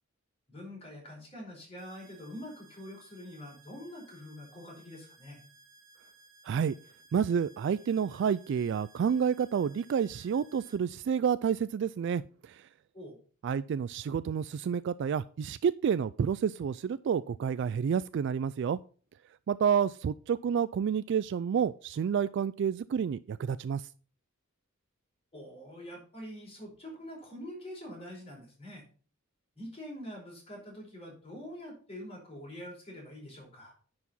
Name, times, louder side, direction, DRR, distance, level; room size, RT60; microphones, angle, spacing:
voice 1, 0.5-5.4 12.9-13.2 25.3-28.8 29.5-33.7, equal, 30° left, -2 dB, 4.8 m, -45 dB
sound 1, 1.8-10.8, right 3 dB, 45° right, 1.8 m, -60 dB
voice 2, 7.1-12.6 13.4-18.8 19.5-23.8, right 7 dB, 60° right, 16 dB, 0.3 m, -29 dB
9.9 x 4.9 x 5.3 m, 0.41 s
head